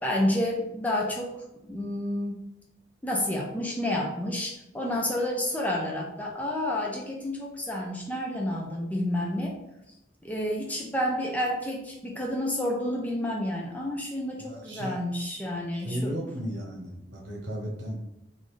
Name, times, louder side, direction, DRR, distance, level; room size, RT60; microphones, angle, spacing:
voice 1, 0.0-2.4 3.0-9.6 10.2-16.1, left 1 dB, 10° left, -2 dB, 0.5 m, -30 dB
voice 2, 14.4-15.0 15.7-18.0, equal, 80° right, -2 dB, 1.1 m, -35 dB
3.8 x 2.6 x 3.1 m, 0.85 s
head